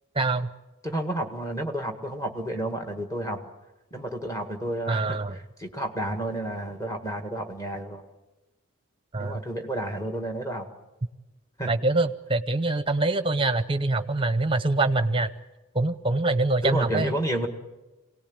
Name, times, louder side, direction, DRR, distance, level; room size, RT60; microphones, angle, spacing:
voice 1, 0.1-0.5 4.9-5.4 9.1-9.4 11.7-15.3 15.7-17.1, right 2 dB, 25° right, 12 dB, 0.8 m, -24 dB
voice 2, 0.8-3.4 3.9-5.2 5.6-8.0 9.2-10.7 11.6-11.7 16.6-17.5, right 1 dB, 15° left, 4 dB, 1.7 m, -30 dB
25.0 x 18.0 x 8.8 m, 1.1 s
head